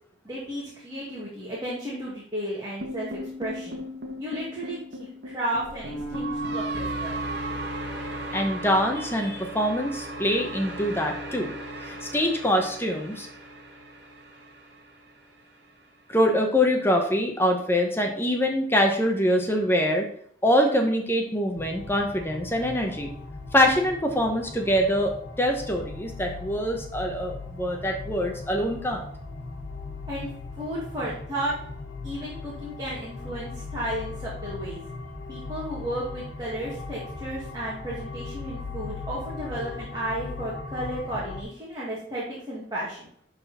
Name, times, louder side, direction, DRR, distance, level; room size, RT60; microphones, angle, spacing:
voice 1, 0.2-3.8 4.2-7.2 30.1-30.3 30.6-31.5 32.0-34.8 35.3-43.1, right 1 dB, 20° right, -7 dB, 2.1 m, -33 dB
sound 1, 2.8-15.0, right 1 dB, 55° right, 1.4 m, -35 dB
voice 2, 8.3-11.5 11.8-13.3 16.1-20.1 20.4-23.1 23.5-29.1, equal, 10° left, 2 dB, 0.9 m, -24 dB
sound 2, 21.6-41.4, left 3 dB, 70° left, 1.5 m, -39 dB
11.5 x 4.1 x 4.2 m, 0.63 s
head